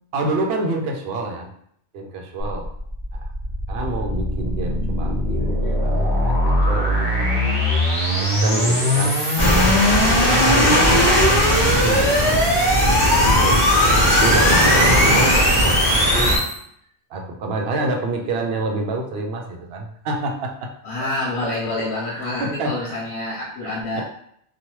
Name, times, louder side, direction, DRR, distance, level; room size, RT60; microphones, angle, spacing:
voice 1, 0.1-1.5 1.9-2.7 3.1-3.2 3.7-7.6 8.2-9.7 10.1-13.6 14.1-16.3 17.1-20.7 21.4-21.5 22.1-23.0 23.6-24.0, right 2 dB, 70° right, 2 dB, 0.8 m, -28 dB
sound 1, 2.4-16.5, equal, 25° right, 0.9 m, -21 dB
sound 2, 9.4-16.4, left 1 dB, 25° left, 0.8 m, -18 dB
voice 2, 20.8-24.0, left 2 dB, 80° left, -5 dB, 1.0 m, -28 dB
2.9 x 2.2 x 3.0 m, 0.68 s
omnidirectional pair, 1.1 m